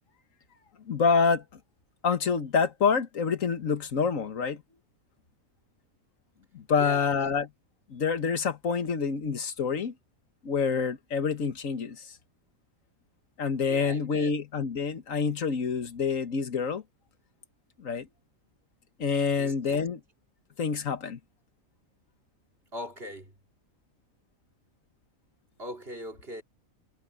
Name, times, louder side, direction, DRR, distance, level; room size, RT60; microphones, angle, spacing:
voice 1, 0.9-1.4 2.0-4.6 6.5-7.5 7.9-9.9 10.4-12.1 13.4-16.8 17.8-18.1 19.0-20.0 20.6-21.2, left 5 dB, 70° left, 1.9 m, -27 dB
voice 2, 6.8-7.1 13.6-14.3 19.3-19.8 22.7-23.3 25.6-26.4, equal, 45° right, 3.3 m, -40 dB
omnidirectional pair, 1.4 m